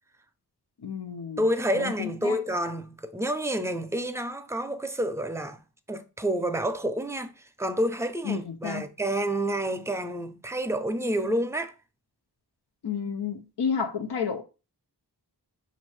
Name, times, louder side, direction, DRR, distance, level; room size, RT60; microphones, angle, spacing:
voice 1, 0.8-1.4 1.7-2.4 8.2-8.8 12.8-14.4, left 6 dB, 75° left, 0.6 m, -31 dB
voice 2, 1.4-5.6 5.9-11.7, right 1 dB, 5° right, 0.5 m, -29 dB
5.4 x 2.6 x 3.2 m
wide cardioid pair, 50°, 40 cm